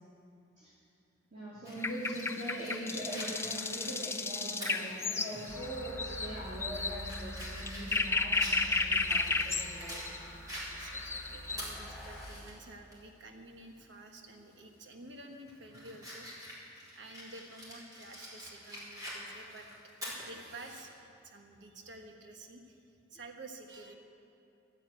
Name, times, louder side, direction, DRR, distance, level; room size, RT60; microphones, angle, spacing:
voice 1, 1.3-10.0, equal, 40° right, -10 dB, 3.0 m, -42 dB
Fire, 1.6-5.5 5.9-6.0 6.5-10.1 10.5-12.5 12.9-13.0 14.5-14.8 15.2-20.8, equal, 20° right, 4.0 m, -46 dB
sound 1, 1.8-10.2 10.7-11.6, left 3 dB, 15° left, 0.5 m, -33 dB
sound 2, 5.5-12.3, equal, ahead, 4.0 m, -47 dB
voice 2, 10.7-16.3 16.9-19.7 20.0-21.0 21.2-22.8 23.1-23.9, right 2 dB, 65° right, 3 dB, 1.3 m, -50 dB
12.5 x 9.2 x 8.9 m, 2.7 s
head